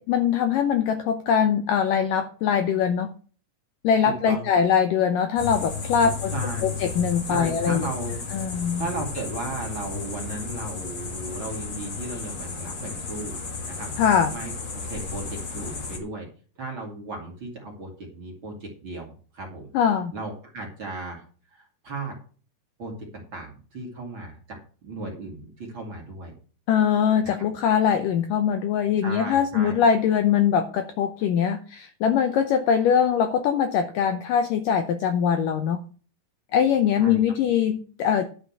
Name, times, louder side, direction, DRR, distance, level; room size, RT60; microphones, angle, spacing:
voice 1, 0.0-3.1 3.8-6.3 6.6-7.9 8.3-8.8 14.0-14.3 19.7-20.1 26.7-35.8 36.5-38.2, left 7 dB, 80° left, 8 dB, 2.0 m, -22 dB
voice 2, 4.0-4.5 6.0-6.8 7.3-8.5 8.8-13.4 13.7-13.9 14.3-14.5 14.8-16.3 16.6-19.7 20.1-21.2 21.5-22.2 22.8-26.3 27.2-27.3 29.0-29.8 37.0-37.2, right 2 dB, 35° right, 0 dB, 2.4 m, -35 dB
sound 1, 5.4-16.0, left 5 dB, 40° left, 1.9 m, -33 dB
11.5 x 5.1 x 7.2 m, 0.41 s
omnidirectional pair, 4.7 m